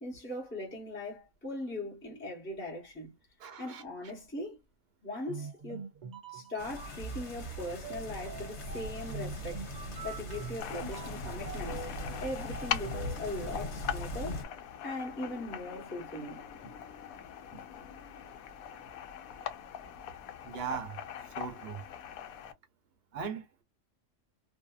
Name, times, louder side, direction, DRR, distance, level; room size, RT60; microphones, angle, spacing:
voice 1, 0.0-3.1 3.6-4.6 5.0-5.9 6.3-11.9 12.2-14.4 14.8-16.7 17.5-17.7, left 1 dB, 10° left, 0.9 m, -40 dB
voice 2, 3.4-4.1 20.4-21.0 21.4-21.8 23.1-23.4, right 7 dB, 50° right, 1.0 m, -39 dB
sound 1, 5.3-13.2, right 5 dB, 75° right, 0.4 m, -44 dB
sound 2, 6.6-14.4, left 1 dB, 55° left, 1.2 m, -40 dB
sound 3, 10.6-22.5, left 9 dB, 90° left, 1.0 m, -42 dB
2.7 x 2.5 x 2.3 m
omnidirectional pair, 1.4 m